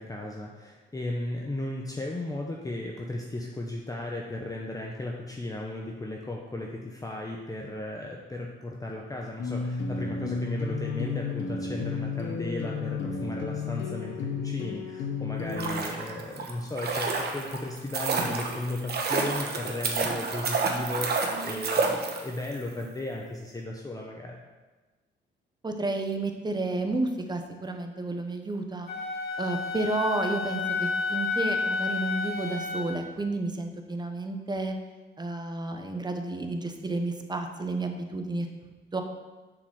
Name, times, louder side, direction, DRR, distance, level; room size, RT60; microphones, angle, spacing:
voice 1, 0.0-24.4, left 2 dB, 15° left, -1 dB, 0.9 m, -35 dB
sound 1, 9.4-15.8, left 4 dB, 70° left, 1.0 m, -32 dB
sound 2, 15.4-22.5 22.8-22.9, right 4 dB, 55° right, 1.2 m, -30 dB
voice 2, 25.6-28.9 29.4-34.7 35.2-38.5 38.9-39.0, right 2 dB, 20° right, 5 dB, 1.0 m, -31 dB
Wind instrument woodwind instrument, 28.9-32.9, left 4 dB, 50° left, 2.5 m, -30 dB
7.0 x 5.1 x 6.4 m, 1.2 s
cardioid pair, 90°, 20 cm